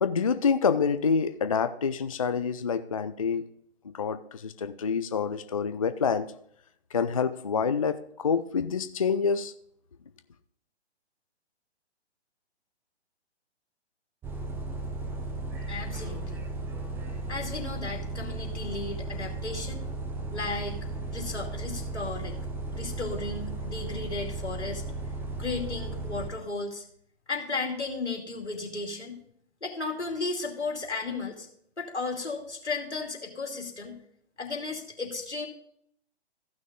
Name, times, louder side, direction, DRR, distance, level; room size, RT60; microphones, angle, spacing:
voice 1, 0.0-3.5 3.8-6.3 6.9-9.5, left 6 dB, 35° left, 0.4 m, -27 dB
Bus, 14.2-26.3, right 2 dB, 5° right, 0.7 m, -35 dB
voice 2, 15.7-16.4 17.0-19.8 20.3-20.8 21.1-22.4 22.7-24.8 25.4-26.8 27.3-29.2 29.6-31.5 31.8-34.0 34.4-35.5, left 3 dB, 80° left, 2.8 m, -34 dB
14.5 x 6.2 x 3.7 m
figure-of-eight pair, 135°, 34 cm